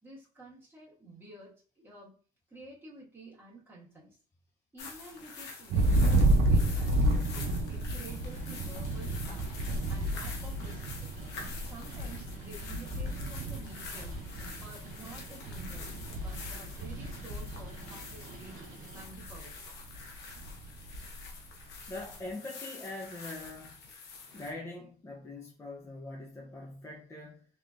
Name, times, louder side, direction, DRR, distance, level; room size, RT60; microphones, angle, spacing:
voice 1, 0.0-2.2 2.5-4.2 4.7-9.5 9.9-11.2 11.7-14.3 14.6-18.7 18.9-19.5 20.1-20.3, right 2 dB, 15° right, 1.7 m, -51 dB
sound 1, 4.8-24.5, left 4 dB, 80° left, 0.9 m, -47 dB
Thunder, 5.7-18.6 18.9-19.5 19.8-21.3, right 1 dB, 70° right, 0.6 m, -31 dB
sound 2, 8.2-19.0, right 4 dB, 55° right, 1.2 m, -52 dB
voice 2, 21.9-23.8 24.3-27.5, left 2 dB, 15° left, 0.7 m, -43 dB
3.4 x 3.0 x 2.5 m
cardioid pair, 110°, 17 cm